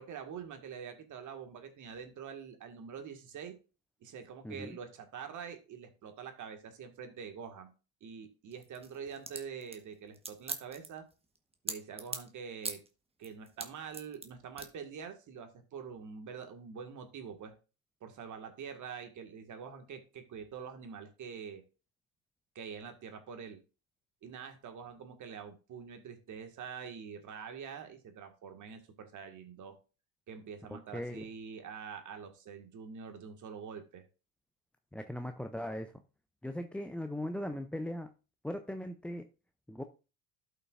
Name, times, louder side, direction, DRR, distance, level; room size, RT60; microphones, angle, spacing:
voice 1, 0.0-3.5 4.0-7.7 8.0-11.1 11.6-12.8 13.2-17.5 18.0-21.6 22.6-23.6 24.2-29.8 30.3-34.0, right 6 dB, 45° right, 6 dB, 1.8 m, -45 dB
voice 2, 4.4-4.8 30.9-31.2 34.9-35.9 36.4-38.1 38.4-39.3 39.7-39.8, left 1 dB, 5° left, 7 dB, 0.4 m, -39 dB
sound 1, 8.5-12.3 12.6-12.9 13.2-14.3 14.6-14.7, right 3 dB, 15° right, 1.2 m, -40 dB
12.0 x 5.7 x 2.5 m, 0.32 s
hypercardioid pair, 85°, 43 cm